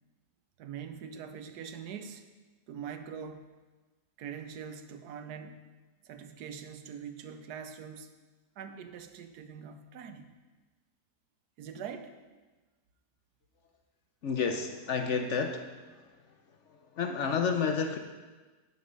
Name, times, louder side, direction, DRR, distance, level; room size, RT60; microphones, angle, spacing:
voice 1, 0.6-2.2 2.7-3.5 4.2-5.7 6.0-8.1 8.6-10.3 11.6-12.1, right 7 dB, 85° right, 9 dB, 1.3 m, -43 dB
voice 2, 14.2-15.7 17.0-18.0, left 5 dB, 60° left, 5 dB, 0.8 m, -30 dB
8.5 x 8.0 x 5.2 m, 1.3 s
omnidirectional pair, 1.7 m